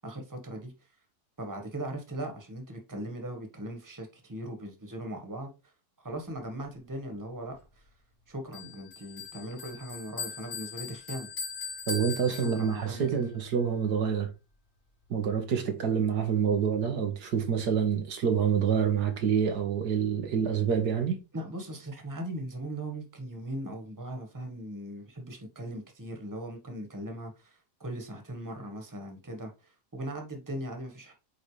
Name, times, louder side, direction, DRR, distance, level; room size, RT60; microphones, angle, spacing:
voice 1, 0.0-0.7 1.4-5.5 6.0-7.8 8.3-11.3 12.3-13.2 21.3-31.1, right 1 dB, 10° right, 1.5 m, -39 dB
Bell, 8.5-13.0, left 5 dB, 85° left, 3.6 m, -40 dB
voice 2, 11.9-14.3 15.1-21.2, right 7 dB, 80° right, 1.9 m, -27 dB
8.7 x 4.1 x 3.3 m
omnidirectional pair, 1.7 m